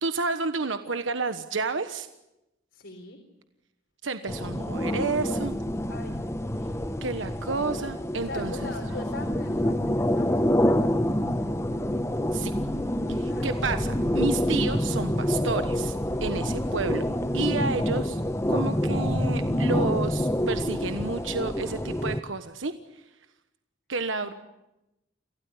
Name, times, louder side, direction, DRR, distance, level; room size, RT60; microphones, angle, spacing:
voice 1, 0.0-2.1 4.0-5.6 7.0-8.7 12.3-12.5 13.1-17.0 17.3-18.2 18.5-23.0 23.9-24.3, right 4 dB, 90° right, 9 dB, 1.3 m, -30 dB
voice 2, 2.7-3.2 5.9-6.6 8.2-12.0 13.2-13.6 24.2-24.3, left 2 dB, 70° left, 2 dB, 4.1 m, -43 dB
sound 1, 4.3-22.2, left 1 dB, 15° left, 1.0 m, -27 dB
sound 2, 12.4-17.5, left 1 dB, 40° left, 1.7 m, -41 dB
28.0 x 17.0 x 9.9 m, 0.91 s
head